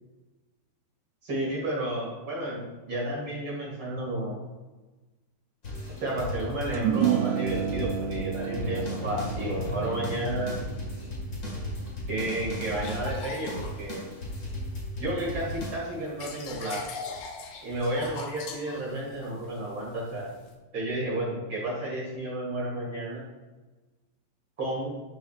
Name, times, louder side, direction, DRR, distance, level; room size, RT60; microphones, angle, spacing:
voice 1, 1.2-4.4 6.0-10.6 12.1-14.0 15.0-16.8 17.6-20.3 20.7-23.2 24.6-24.9, right 1 dB, 35° right, -4 dB, 2.0 m, -32 dB
sound 1, 5.6-15.7, left 1 dB, 60° left, 0.9 m, -36 dB
sound 2, 6.7-13.3, right 9 dB, 90° right, 2.3 m, -32 dB
sound 3, 12.7-14.8 15.2-20.5, left 5 dB, 90° left, 1.8 m, -42 dB
13.0 x 6.5 x 2.5 m, 1.2 s
omnidirectional pair, 5.2 m